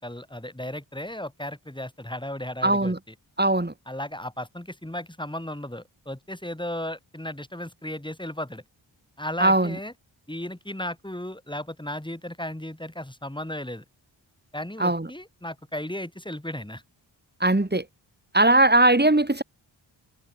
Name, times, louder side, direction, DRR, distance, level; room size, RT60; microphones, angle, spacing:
voice 1, 0.0-3.1 3.9-8.6 9.2-9.9 10.3-13.8 14.5-16.8, left 1 dB, 10° left, 7.2 m, -35 dB
voice 2, 2.6-3.0 3.4-3.7 9.4-9.8 14.8-15.1 17.4-17.8 18.3-19.4, right 2 dB, 20° right, 5.1 m, -19 dB
cardioid pair, 45°, 48 cm